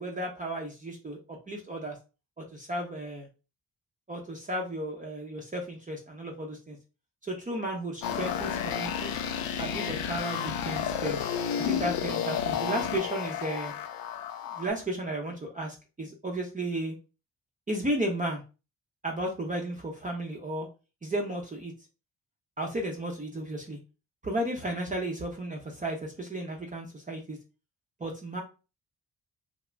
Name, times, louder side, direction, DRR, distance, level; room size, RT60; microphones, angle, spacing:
voice 1, 0.0-2.0 2.4-3.3 4.1-6.8 7.2-9.1 9.6-11.2 11.6-13.7 14.5-16.9 17.7-18.4 19.0-20.7 21.0-21.7 22.6-23.8 24.2-27.4 28.0-28.4, right 1 dB, 25° right, 0 dB, 0.6 m, -34 dB
sound 1, 8.0-14.7, left 8 dB, 85° left, 0.5 m, -31 dB
2.4 x 2.0 x 3.1 m, 0.32 s
cardioid pair, 65°, 35 cm